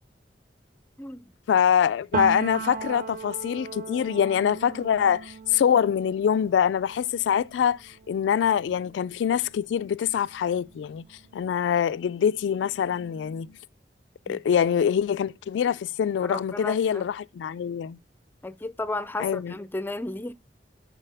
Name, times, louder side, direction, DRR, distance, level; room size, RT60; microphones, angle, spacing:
voice 1, 1.5-13.6 14.3-18.0 19.2-19.5, left 8 dB, 85° left, 0.3 m, -24 dB
Piano, 2.1-9.7 10.1-11.6, right 6 dB, 50° right, 0.5 m, -38 dB
voice 2, 16.2-17.1 18.4-20.3, left 2 dB, 10° left, 0.4 m, -33 dB
9.8 x 4.2 x 3.3 m
head